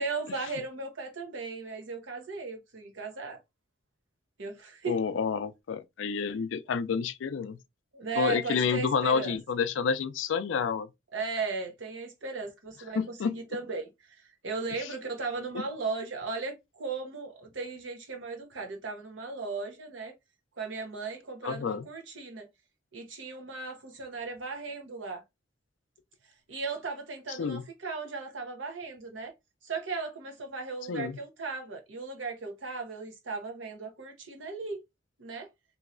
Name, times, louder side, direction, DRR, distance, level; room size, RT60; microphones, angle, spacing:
voice 1, 0.0-3.4 4.4-5.0 7.9-9.4 11.1-20.1 20.6-22.5 22.9-25.2 26.5-29.3 29.6-34.8 35.2-35.5, right 4 dB, 80° right, 0.9 m, -36 dB
voice 2, 4.9-7.6 8.2-10.9 12.9-13.3 14.8-14.9 21.4-21.9 27.3-27.6 30.9-31.2, left 6 dB, 80° left, 0.4 m, -29 dB
3.0 x 2.7 x 2.5 m
head